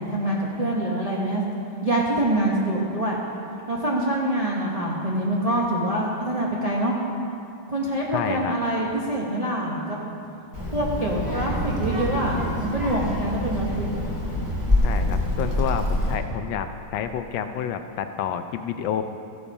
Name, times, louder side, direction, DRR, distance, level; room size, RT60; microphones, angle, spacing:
voice 1, 0.0-1.4 1.8-3.2 3.7-6.9 7.7-10.1 10.7-13.9, right 1 dB, 30° right, -4 dB, 0.7 m, -25 dB
voice 2, 8.1-8.6 14.8-19.0, left 8 dB, 75° left, 8 dB, 1.3 m, -29 dB
Child speech kid speaking, 10.5-16.1, left 1 dB, 10° right, 1.8 m, -26 dB
14.0 x 6.9 x 5.4 m, 2.5 s
omnidirectional pair, 2.2 m